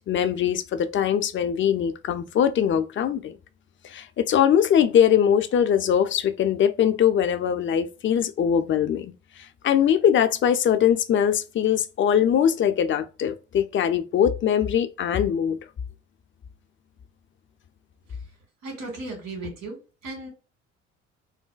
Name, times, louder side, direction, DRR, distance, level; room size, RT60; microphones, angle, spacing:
voice 1, 0.1-3.4 3.8-15.6, left 9 dB, 35° left, 0.4 m, -22 dB
voice 2, 18.6-20.3, right 2 dB, 70° right, 1.7 m, -36 dB
3.9 x 2.1 x 2.3 m
hypercardioid pair, 55°, 36 cm